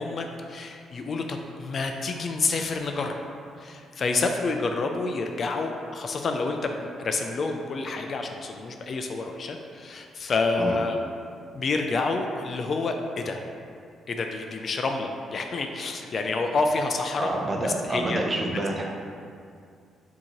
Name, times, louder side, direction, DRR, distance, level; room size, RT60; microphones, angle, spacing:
voice 1, 0.0-3.2 3.6-11.0 11.5-13.4 14.1-17.3 17.6-18.2, left 3 dB, 50° left, 4 dB, 0.3 m, -28 dB
voice 2, 17.2-18.8, right 2 dB, 30° right, 0 dB, 0.6 m, -28 dB
6.1 x 2.8 x 2.9 m, 2.3 s
cardioid pair, 90°, 0 cm